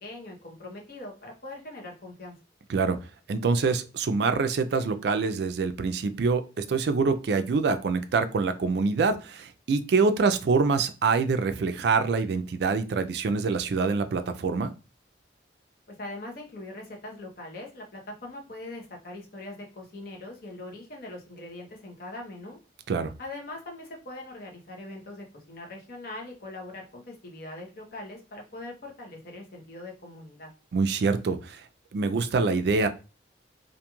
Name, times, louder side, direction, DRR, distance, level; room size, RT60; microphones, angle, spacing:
voice 1, 0.0-2.4 15.9-22.6 23.2-30.5, left 2 dB, 50° left, 0 dB, 0.8 m, -41 dB
voice 2, 3.3-14.7 22.9-23.1 30.7-31.6 31.9-32.9, right 4 dB, 60° right, 10 dB, 0.3 m, -25 dB
2.5 x 2.3 x 2.9 m, 0.31 s
head